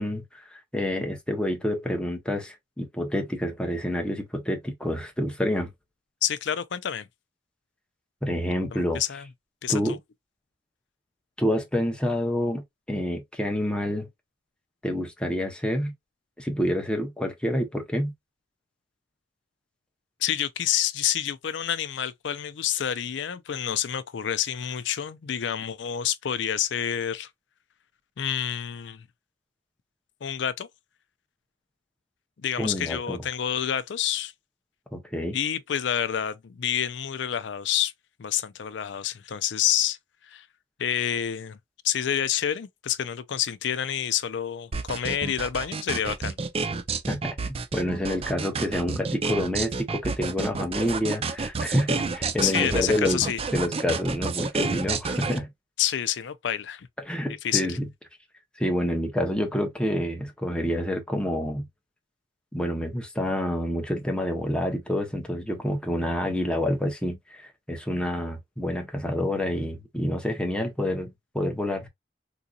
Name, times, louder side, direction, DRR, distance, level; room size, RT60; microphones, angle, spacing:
voice 1, 0.0-5.7 8.2-9.0 9.7-10.0 11.4-14.1 14.8-15.9 16.4-18.1 32.6-33.2 34.9-35.4 47.1-53.2 53.5-55.5 57.0-57.9 58.6-61.7 62.5-71.9, equal, 5° left, 0.8 m, -28 dB
voice 2, 6.2-7.1 8.7-9.3 9.6-10.0 20.2-27.3 28.2-29.0 30.2-30.7 32.4-34.3 35.3-37.9 38.2-40.0 40.3-40.5 40.8-41.6 41.8-46.4 52.4-53.4 55.8-56.9 57.4-57.8, left 10 dB, 70° left, 0.4 m, -28 dB
sound 1, 44.7-55.4, right 4 dB, 30° right, 0.4 m, -29 dB
3.8 x 2.7 x 2.3 m
head